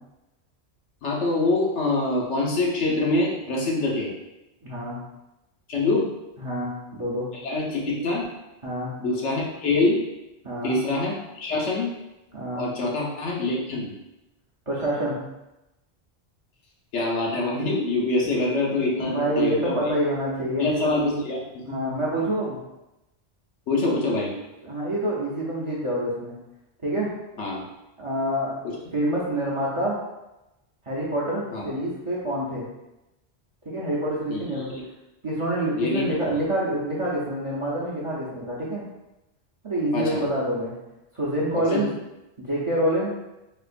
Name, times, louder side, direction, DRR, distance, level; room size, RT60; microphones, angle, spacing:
voice 1, 1.0-4.1 5.7-6.1 7.4-8.3 9.0-10.0 10.6-11.9 12.6-13.9 16.9-19.9 20.6-21.4 21.7-21.8 23.7-24.3 27.4-27.6 31.5-31.6 34.3-34.4 35.7-36.0 36.3-36.4 39.9-40.2 41.6-41.9, left 2 dB, 85° left, -3 dB, 1.1 m, -25 dB
voice 2, 4.6-5.0 6.4-7.3 8.6-8.9 10.4-10.8 12.3-12.6 14.7-15.2 19.0-20.7 21.7-22.6 24.6-26.3 26.8-27.1 28.0-28.6 28.9-30.0 30.8-32.7 33.6-34.7 35.2-38.8 39.6-40.7 41.1-41.9 42.4-43.1, right 1 dB, 35° right, -7 dB, 0.6 m, -27 dB
4.2 x 2.3 x 2.5 m, 0.96 s
omnidirectional pair, 1.2 m